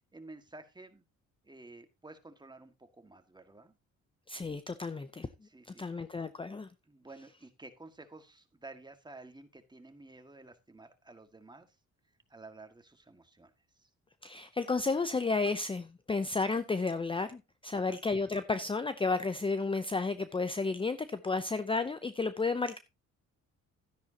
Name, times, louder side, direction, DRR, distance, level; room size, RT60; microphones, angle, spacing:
voice 1, 0.1-1.0 1.4-3.8 5.4-6.0 6.9-11.7 12.3-13.5 13.8-13.9 17.7-18.0, right 2 dB, 15° right, 1.9 m, -52 dB
voice 2, 4.3-5.3 5.7-6.7 14.2-22.8, left 3 dB, 15° left, 0.7 m, -32 dB
12.5 x 10.0 x 2.9 m
cardioid pair, 90°, 30 cm